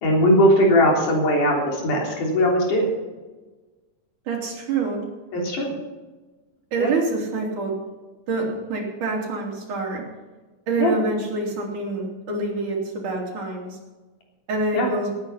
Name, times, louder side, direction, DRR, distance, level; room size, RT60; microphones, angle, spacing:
voice 1, 0.0-2.8 5.3-5.7 6.8-6.9 10.8-11.0 14.7-14.9, equal, 85° left, -1 dB, 4.9 m, -19 dB
voice 2, 4.3-5.1 6.7-7.7 8.3-10.0 10.7-13.8 14.5-15.1, right 3 dB, 80° right, -1 dB, 4.6 m, -26 dB
18.0 x 9.4 x 5.7 m, 1.2 s
omnidirectional pair, 3.5 m